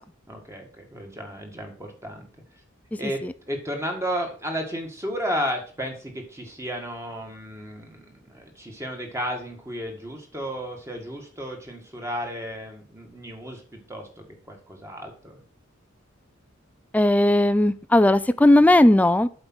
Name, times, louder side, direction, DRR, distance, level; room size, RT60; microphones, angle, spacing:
voice 1, 0.3-2.3 3.0-3.2 3.5-15.4, equal, 15° right, 2 dB, 1.8 m, -33 dB
voice 2, 16.9-19.3, left 1 dB, 5° left, 13 dB, 0.3 m, -17 dB
8.0 x 5.1 x 6.2 m, 0.42 s
head